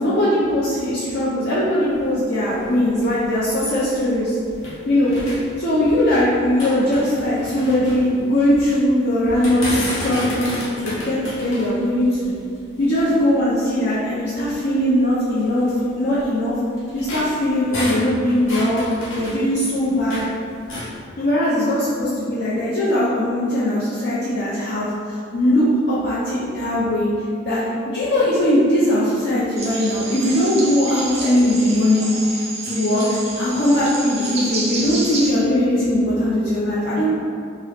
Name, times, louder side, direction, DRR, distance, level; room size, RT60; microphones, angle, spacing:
voice 1, 0.0-4.3 4.9-5.2 5.6-12.3 12.8-16.6 16.9-18.8 19.1-20.2 21.2-27.1 27.5-32.1 32.6-33.1 33.4-37.1, left 1 dB, 55° left, -8 dB, 0.5 m, -20 dB
sound 1, 1.8-4.8 5.1-6.2 6.4-8.8 9.2-13.3 13.9-14.0 14.5-14.6 15.4-20.3 20.6-21.0, left 1 dB, 90° left, 0.8 m, -32 dB
sound 2, 29.6-35.3, right 3 dB, 30° right, 0.4 m, -29 dB
2.9 x 2.4 x 3.1 m, 2.3 s
head